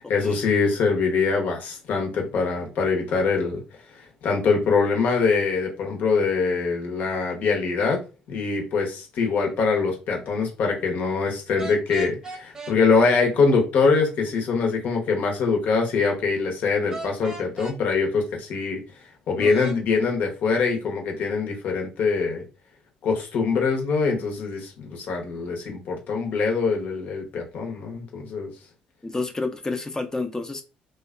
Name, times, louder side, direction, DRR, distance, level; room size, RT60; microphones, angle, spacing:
voice 1, 0.1-3.6 3.9-18.8 19.3-22.4 23.0-28.5, left 4 dB, 65° left, 2 dB, 0.9 m, -23 dB
sound 1, 11.6-12.8 16.9-17.8 19.4-19.8, right 2 dB, 20° right, 0.7 m, -37 dB
voice 2, 29.0-30.6, left 3 dB, 20° left, 7 dB, 0.5 m, -29 dB
2.7 x 2.3 x 2.4 m, 0.30 s
supercardioid pair, 70°, 3 cm